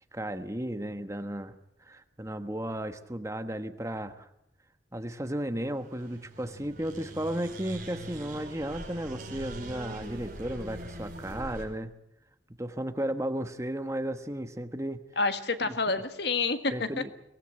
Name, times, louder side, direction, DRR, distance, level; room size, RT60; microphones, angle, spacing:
voice 1, 0.1-1.5 1.8-4.3 4.9-11.9 12.6-15.0 15.7-16.0 16.7-17.1, right 1 dB, 15° right, 8 dB, 1.3 m, -34 dB
sound 1, 5.7-11.6, right 1 dB, 45° right, 5.4 m, -42 dB
voice 2, 15.2-17.0, left 3 dB, 60° left, 9 dB, 1.7 m, -28 dB
23.0 x 18.5 x 9.0 m, 0.79 s
head